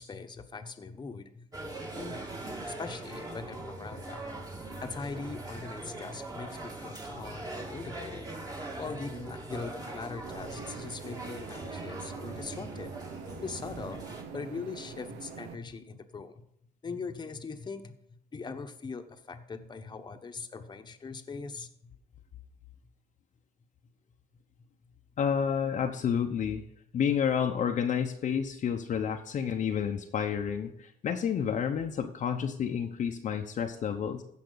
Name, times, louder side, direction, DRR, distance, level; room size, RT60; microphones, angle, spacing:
voice 1, 0.0-1.5 1.8-4.4 4.8-8.5 8.8-12.9 13.4-16.4 16.8-21.9, left 4 dB, 25° left, 7 dB, 1.1 m, -41 dB
sound 1, 1.5-14.2, right 2 dB, 20° right, 1.9 m, -41 dB
sound 2, 10.2-15.6, right 6 dB, 85° right, 1.1 m, -45 dB
voice 2, 25.2-26.6 26.9-34.2, left 7 dB, 45° left, 4 dB, 0.8 m, -30 dB
15.5 x 5.9 x 4.0 m, 0.76 s
cardioid pair, 110°, 17 cm